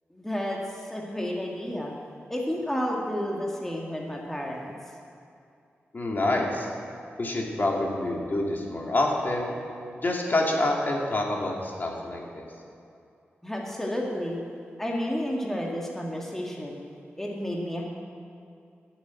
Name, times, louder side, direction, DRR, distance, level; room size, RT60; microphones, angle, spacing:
voice 1, 0.1-2.0 2.3-4.7 13.4-14.4 14.8-16.8 17.2-17.8, equal, 10° left, -2 dB, 1.6 m, -31 dB
voice 2, 5.9-6.7 7.2-9.5 10.0-12.5, left 2 dB, 45° left, -1 dB, 2.2 m, -27 dB
10.0 x 7.3 x 9.1 m, 2.5 s
cardioid pair, 65°, 4 cm